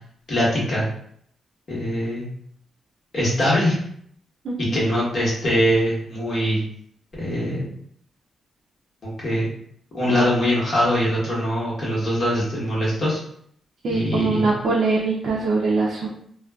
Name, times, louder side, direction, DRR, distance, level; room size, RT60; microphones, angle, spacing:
voice 1, 0.3-0.9 1.7-2.3 3.1-3.8 4.7-6.6 7.2-7.7 9.2-9.5 9.9-13.2 13.9-14.5, equal, 45° left, -6 dB, 1.1 m, -22 dB
voice 2, 13.8-16.1, right 3 dB, 60° right, -4 dB, 0.4 m, -22 dB
2.5 x 2.2 x 2.2 m, 0.66 s
wide cardioid pair, 140°, 0 cm